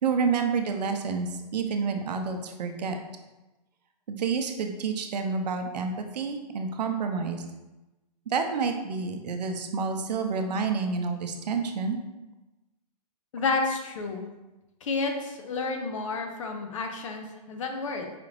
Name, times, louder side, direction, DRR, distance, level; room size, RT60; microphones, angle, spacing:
voice 1, 0.0-3.0 4.1-7.4 8.3-12.0, right 5 dB, 75° right, 5 dB, 0.6 m, -29 dB
voice 2, 13.3-14.3 14.8-18.1, left 3 dB, 50° left, 4 dB, 0.5 m, -30 dB
4.9 x 2.4 x 3.3 m, 1.1 s
hypercardioid pair, 170°, 21 cm